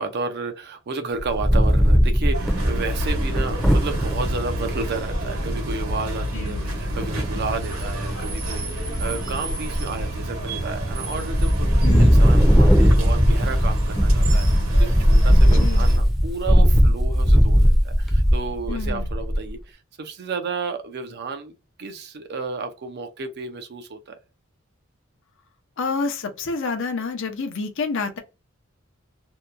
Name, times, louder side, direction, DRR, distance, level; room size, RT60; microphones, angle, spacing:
voice 1, 0.0-21.5 21.8-24.1, right 4 dB, 50° right, 0.5 m, -32 dB
Wind, 1.2-4.3 4.8-4.9 5.1-5.5 7.0-7.6 8.1-8.6 8.9-10.0 10.5-11.0 11.3-19.5, equal, ahead, 0.6 m, -18 dB
sound 1, 2.3-16.0, right 1 dB, 85° right, 1.1 m, -29 dB
voice 2, 6.3-6.7 11.8-12.3 15.6-15.9 18.7-19.1 25.8-28.2, left 4 dB, 60° left, 0.6 m, -28 dB
2.8 x 2.1 x 2.4 m
head